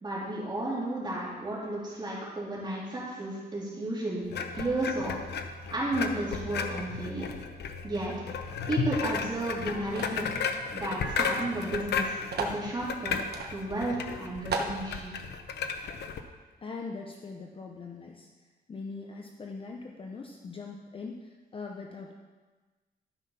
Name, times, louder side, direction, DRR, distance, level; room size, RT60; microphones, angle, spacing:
voice 1, 0.0-5.2 5.7-7.3 7.8-8.1 8.7-10.4 10.7-13.2 13.5-15.1, right 2 dB, 25° right, -6 dB, 3.3 m, -33 dB
sound 1, 4.3-16.2, left 6 dB, 90° left, 0.8 m, -34 dB
sound 2, 10.0-10.3 11.2-11.3 11.5-11.6 12.3-12.6 13.3-13.5 14.0-14.1 14.5-14.8, right 4 dB, 75° right, 1.2 m, -33 dB
voice 2, 16.6-18.3 18.7-22.1, left 4 dB, 30° left, 1 dB, 0.7 m, -41 dB
13.0 x 5.7 x 5.8 m, 1.3 s
wide cardioid pair, 155°, 17 cm